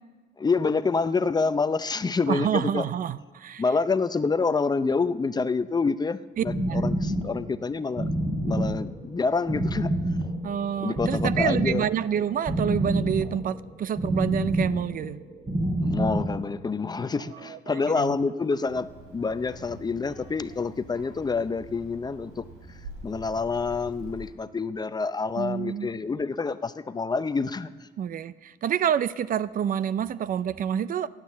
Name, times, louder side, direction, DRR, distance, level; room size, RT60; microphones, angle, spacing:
voice 1, 0.4-2.8 3.6-8.1 8.4-9.9 10.8-11.9 15.8-22.4 23.0-27.9, left 4 dB, 20° left, 13 dB, 0.6 m, -27 dB
voice 2, 2.3-3.6 6.4-6.8 10.4-15.2 17.5-18.2 25.4-25.9 28.0-31.1, right 9 dB, 45° right, 17 dB, 0.5 m, -28 dB
sound 1, 6.3-16.5, right 1 dB, 30° right, 4.1 m, -28 dB
Child speech kid speaking, 18.7-24.3, right 2 dB, 85° right, 3.3 m, -45 dB
16.5 x 9.0 x 7.4 m, 1.4 s
cardioid pair, 95°, 19 cm